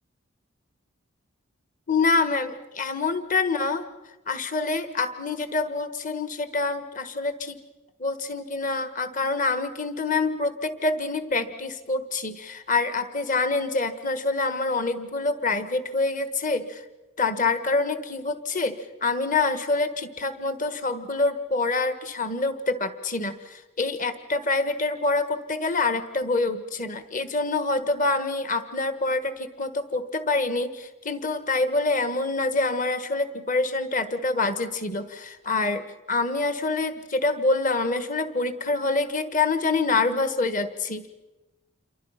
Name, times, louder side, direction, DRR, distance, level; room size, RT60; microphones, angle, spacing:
voice 1, 1.9-3.9 4.3-7.6 8.0-16.8 17.2-18.8 19.0-35.8 36.1-41.1, left 3 dB, 35° left, 10 dB, 1.6 m, -26 dB
28.5 x 24.0 x 5.9 m, 1.1 s
head